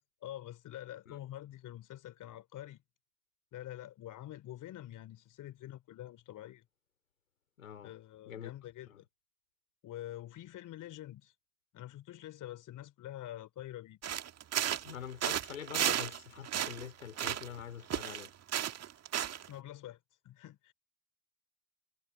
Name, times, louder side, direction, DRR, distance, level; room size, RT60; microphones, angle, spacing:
voice 1, 0.2-2.8 3.5-6.6 7.8-9.1 9.8-11.3 11.7-14.0 19.5-20.0 20.2-20.7, left 13 dB, 50° left, 3.4 m, -46 dB
voice 2, 7.6-7.9 8.3-8.5 8.9-9.0 14.8-18.3, left 9 dB, 85° left, 3.6 m, -45 dB
sound 1, 14.0-15.0 15.2-16.2 16.4-17.6 17.9-19.5, right 10 dB, 40° right, 1.9 m, -34 dB
hypercardioid pair, 65°, 40 cm